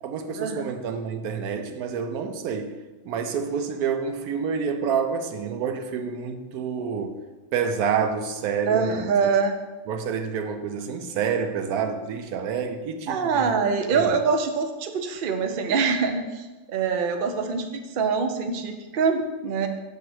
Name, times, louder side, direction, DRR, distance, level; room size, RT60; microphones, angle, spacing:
voice 1, 0.0-2.8 3.0-7.2 7.5-9.3 9.9-13.5 13.9-14.2, right 6 dB, 90° right, 1.2 m, -28 dB
voice 2, 8.7-9.6 13.1-19.7, right 5 dB, 50° right, 0.6 m, -24 dB
7.2 x 3.7 x 6.0 m
omnidirectional pair, 1.6 m